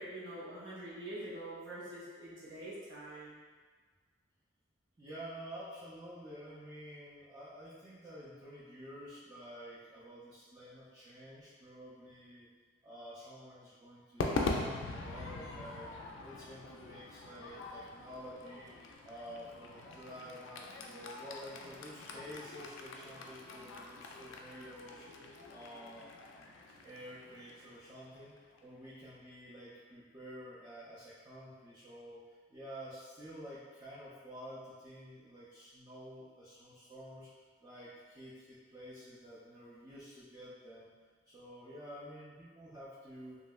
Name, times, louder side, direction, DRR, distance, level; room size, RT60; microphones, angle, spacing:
voice 1, 0.0-3.3, right 1 dB, 80° right, -10 dB, 1.2 m, -45 dB
voice 2, 5.0-12.5 12.8-18.7 19.0-25.0 25.5-26.1 26.8-37.3 37.6-40.9 41.3-43.4, equal, 20° right, -9 dB, 0.4 m, -50 dB
Crowd / Fireworks, 14.2-28.6, left 3 dB, 75° left, 0.3 m, -43 dB
3.1 x 2.7 x 2.3 m, 1.5 s
head